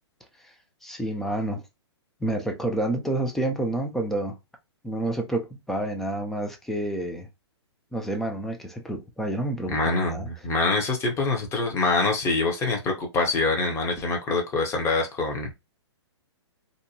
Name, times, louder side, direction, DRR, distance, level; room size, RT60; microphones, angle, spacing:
voice 1, 0.8-1.6 2.2-4.4 4.8-7.3 7.9-10.3, right 1 dB, ahead, 0.3 m, -29 dB
voice 2, 9.7-15.5, left 3 dB, 20° left, 0.7 m, -25 dB
2.6 x 2.1 x 2.7 m
hypercardioid pair, 135°, 15 cm